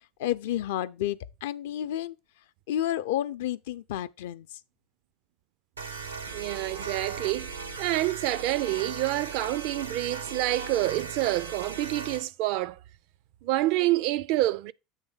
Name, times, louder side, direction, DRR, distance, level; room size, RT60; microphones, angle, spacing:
voice 1, 0.2-2.1 2.7-4.5, left 12 dB, 70° left, 0.5 m, -30 dB
sound 1, 5.8-12.3, right 5 dB, 90° right, 1.0 m, -38 dB
voice 2, 6.3-12.8 13.4-14.7, right 16 dB, 60° right, 0.4 m, -28 dB
8.1 x 3.2 x 5.5 m
figure-of-eight pair, 75°, 0 cm